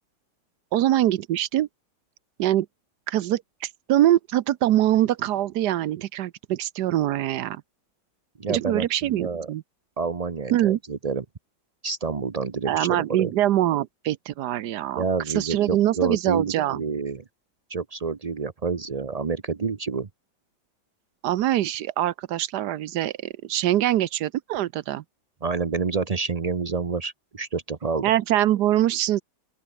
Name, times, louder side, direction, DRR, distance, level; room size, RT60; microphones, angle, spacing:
voice 1, 0.7-1.7 2.4-2.7 3.1-7.6 8.5-9.6 10.5-10.8 12.7-15.0 15.3-16.8 21.2-25.0 28.0-29.2, right 13 dB, 65° right, 1.1 m, -23 dB
voice 2, 8.4-9.5 10.0-11.2 11.8-13.3 14.9-17.2 17.7-20.1 25.4-28.1, right 4 dB, 85° right, 0.3 m, -28 dB
open air
omnidirectional pair, 2.2 m